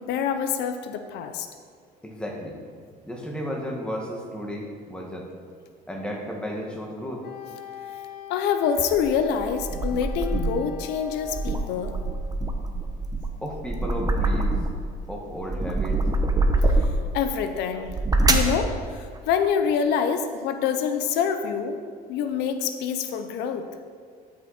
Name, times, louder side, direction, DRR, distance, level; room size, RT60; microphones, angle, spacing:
voice 1, 0.0-1.5 8.3-12.0 17.1-17.9 18.3-21.8 22.1-23.7, left 7 dB, 90° left, 8 dB, 0.7 m, -26 dB
voice 2, 2.0-2.6 3.1-5.3 5.9-7.3 13.4-14.5 15.1-16.0, equal, 5° left, -1 dB, 1.9 m, -33 dB
Wind instrument woodwind instrument, 7.2-12.0, left 10 dB, 70° left, 1.2 m, -43 dB
sound 1, 8.8-10.7 11.1-14.9 15.3-17.1 17.7-18.6, right 2 dB, 20° right, 1.0 m, -25 dB
13.0 x 6.1 x 4.3 m, 2.1 s
cardioid pair, 110°, 17 cm